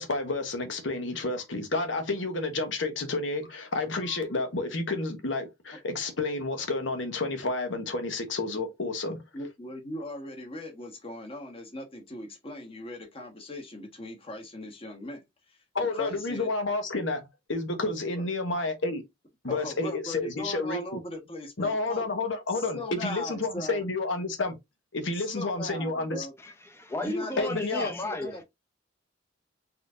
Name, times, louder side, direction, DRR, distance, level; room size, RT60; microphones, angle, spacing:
voice 1, 0.0-9.2 15.7-19.0 19.4-21.0 21.6-24.6 24.9-26.3 27.4-27.9, left 3 dB, 75° left, 1.2 m, -30 dB
voice 2, 9.3-16.5 18.1-18.2 19.5-22.0 22.5-23.8 25.1-26.3 27.0-28.4, left 1 dB, 30° left, 1.3 m, -39 dB
voice 3, 26.4-28.4, left 1 dB, 15° left, 0.8 m, -34 dB
4.2 x 4.0 x 2.5 m
head